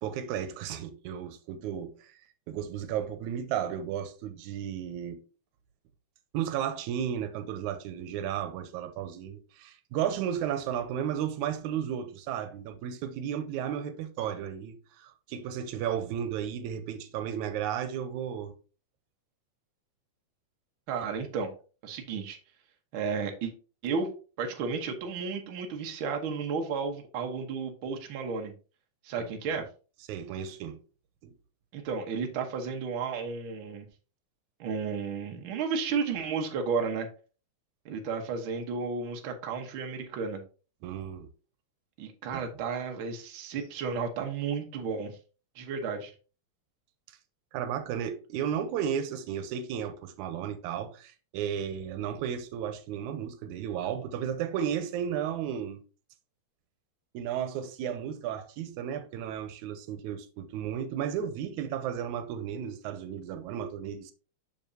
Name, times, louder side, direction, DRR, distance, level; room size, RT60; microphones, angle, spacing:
voice 1, 0.0-2.1 2.5-5.2 6.3-18.5 29.2-29.6 30.1-30.8 31.2-31.3 40.8-41.3 42.3-42.4 47.5-55.8 57.1-64.1, right 9 dB, 90° right, 2.1 m, -34 dB
voice 2, 20.9-21.5 21.8-22.4 22.9-23.5 23.8-24.1 24.4-28.5 29.0-29.7 31.7-33.9 34.6-37.1 37.8-40.4 42.0-45.2 45.5-46.1, right 5 dB, 55° right, 1.5 m, -33 dB
6.9 x 6.2 x 2.7 m
omnidirectional pair, 3.3 m